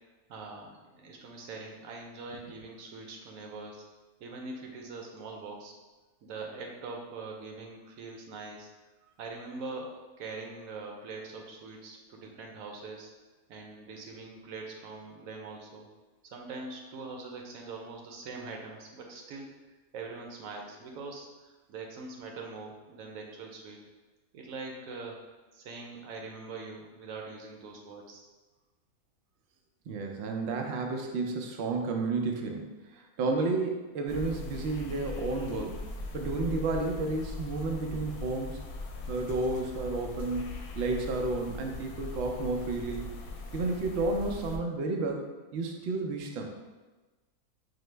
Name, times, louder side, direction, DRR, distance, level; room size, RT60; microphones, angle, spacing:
voice 1, 0.3-3.8 4.2-5.7 6.2-8.7 9.2-13.1 13.5-15.9 16.2-19.5 19.9-23.8 24.3-25.2 25.5-28.2, right 3 dB, 65° right, 1 dB, 1.0 m, -43 dB
voice 2, 29.9-35.8 36.1-38.6 39.1-43.1 43.5-46.6, right 3 dB, 90° right, 2 dB, 0.5 m, -32 dB
sound 1, 34.1-44.6, left 3 dB, 70° left, 1.0 m, -40 dB
5.8 x 2.0 x 3.2 m, 1.2 s
omnidirectional pair, 1.7 m